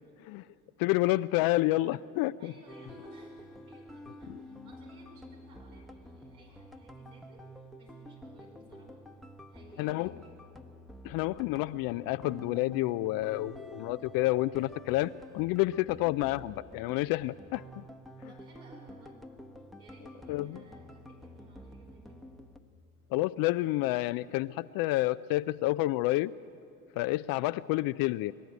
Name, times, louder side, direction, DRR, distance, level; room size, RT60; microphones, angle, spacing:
voice 1, 0.8-2.5 4.3-4.4 9.8-10.1 11.0-17.8 20.3-20.6 23.1-26.3 27.0-28.3, left 18 dB, 55° left, 14 dB, 0.5 m, -29 dB
voice 2, 2.4-10.3 10.6-10.7 18.3-19.2 19.8-22.3, right 2 dB, 85° right, -2 dB, 5.4 m, -57 dB
sound 1, 2.7-22.6, equal, ahead, 1.0 m, -49 dB
23.5 x 12.0 x 9.4 m, 2.5 s
hypercardioid pair, 75°, 42 cm